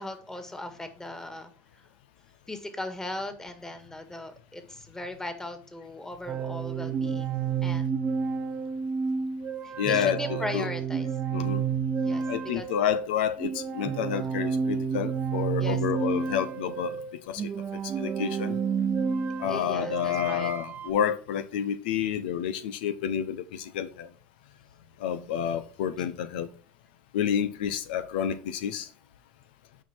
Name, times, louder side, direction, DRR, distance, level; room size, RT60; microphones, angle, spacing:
voice 1, 0.0-1.5 2.5-7.9 9.6-11.1 12.0-12.7 14.1-14.3 15.6-15.8 19.5-20.5 26.0-26.1, left 1 dB, 10° left, 1.8 m, -38 dB
sound 1, 6.3-20.9, right 6 dB, 35° right, 0.9 m, -30 dB
voice 2, 9.8-10.7 11.3-11.6 12.3-17.0 17.3-17.4 18.0-18.6 19.4-24.1 25.0-26.5 27.1-28.9, left 9 dB, 85° left, 0.8 m, -29 dB
9.2 x 4.7 x 4.5 m
supercardioid pair, 95°, 5 cm